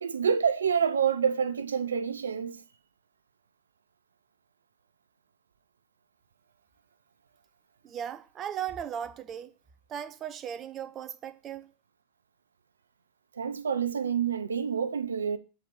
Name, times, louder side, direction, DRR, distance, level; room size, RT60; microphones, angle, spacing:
voice 1, 0.0-2.6 13.4-15.4, right 7 dB, 70° right, 0.5 m, -27 dB
voice 2, 7.8-9.5 9.9-11.7, right 9 dB, 30° right, 0.7 m, -37 dB
7.2 x 4.5 x 6.6 m
figure-of-eight pair, 90°, 0 cm